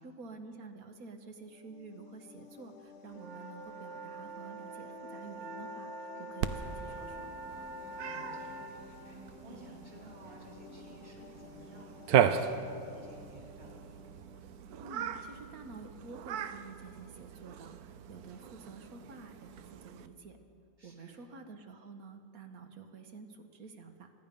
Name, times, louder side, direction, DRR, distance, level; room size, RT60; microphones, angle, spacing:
voice 1, 0.0-7.3 14.8-20.4 20.8-24.1, right 4 dB, 70° right, 6 dB, 1.6 m, -49 dB
sound 1, 1.4-15.0, left 5 dB, 55° left, 1.3 m, -53 dB
sound 2, 3.1-8.7, right 2 dB, 55° right, 1.2 m, -45 dB
Cat, 6.4-20.1, right 8 dB, 90° right, 1.2 m, -37 dB
voice 2, 8.0-13.7 20.8-21.2, equal, 40° right, -3 dB, 3.7 m, -56 dB
24.5 x 11.0 x 5.3 m, 2.4 s
omnidirectional pair, 1.6 m